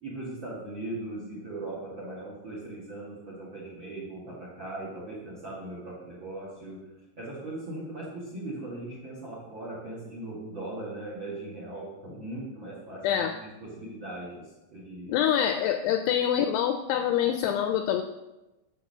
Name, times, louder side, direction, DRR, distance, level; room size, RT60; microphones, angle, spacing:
voice 1, 0.0-6.8 7.2-15.1, right 2 dB, 40° right, -4 dB, 2.0 m, -39 dB
voice 2, 13.0-13.3 15.1-18.0, left 9 dB, 85° left, 6 dB, 2.4 m, -25 dB
10.5 x 4.9 x 6.6 m, 1.0 s
omnidirectional pair, 5.2 m